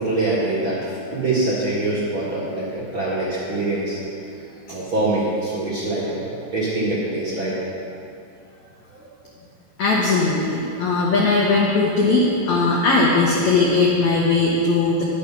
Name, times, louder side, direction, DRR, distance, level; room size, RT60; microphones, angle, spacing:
voice 1, 0.0-4.0 4.7-7.6 9.0-9.1, right 2 dB, 50° right, -9 dB, 1.5 m, -24 dB
voice 2, 9.8-15.0, left 3 dB, 80° left, -4 dB, 1.6 m, -19 dB
10.5 x 8.7 x 5.8 m, 2.6 s
omnidirectional pair, 5.0 m